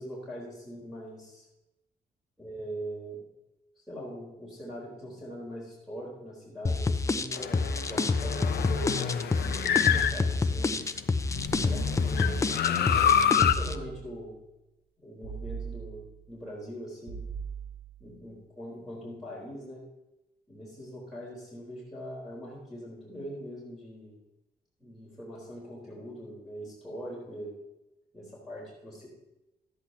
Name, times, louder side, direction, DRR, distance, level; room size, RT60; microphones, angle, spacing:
voice 1, 0.0-1.4 2.4-3.2 3.9-10.8 11.6-14.4 15.0-17.2 18.0-19.8 20.5-24.2 24.8-27.6 28.1-29.1, equal, ahead, -7 dB, 4.2 m, -42 dB
sound 1, 6.6-13.7, left 3 dB, 20° left, 0.5 m, -28 dB
sound 2, 7.3-10.8 11.3-13.5, left 9 dB, 75° left, 0.6 m, -27 dB
sound 3, 11.5-12.5 13.4-14.3 15.2-16.3 17.1-18.1, right 6 dB, 35° right, 2.2 m, -41 dB
13.0 x 10.5 x 2.9 m, 0.94 s
cardioid pair, 120°, 17 cm